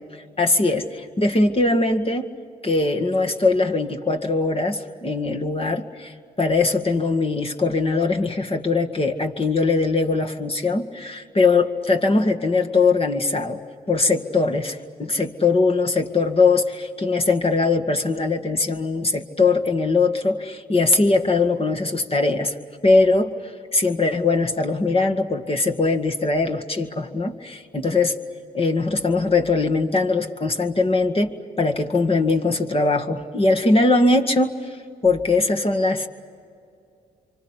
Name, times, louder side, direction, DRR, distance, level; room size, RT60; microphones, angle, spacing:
voice 1, 0.4-2.3 2.6-13.6 13.9-22.5 22.8-23.3 23.7-28.2 28.5-34.5 35.0-36.1, left 3 dB, 35° left, 4 dB, 2.0 m, -21 dB
26.0 x 24.5 x 8.3 m, 2.4 s
supercardioid pair, 60°, 17 cm